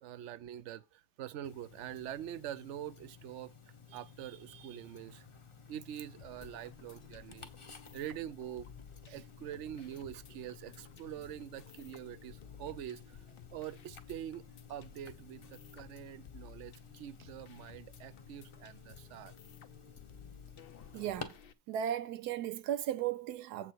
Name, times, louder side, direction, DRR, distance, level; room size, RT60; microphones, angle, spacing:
voice 1, 0.0-3.5 3.9-5.3 5.7-7.5 7.9-8.7 9.1-13.2 13.5-19.3, right 11 dB, 65° right, 0.7 m, -45 dB
Tick-tock, 1.4-21.2, left 5 dB, 25° left, 0.7 m, -54 dB
sound 1, 6.1-12.8, left 5 dB, 75° left, 1.7 m, -63 dB
sound 2, 6.2-21.5, left 7 dB, 55° left, 0.6 m, -56 dB
voice 2, 20.9-21.3 21.7-23.7, right 10 dB, 85° right, 1.2 m, -36 dB
7.6 x 6.1 x 4.6 m
omnidirectional pair, 1.7 m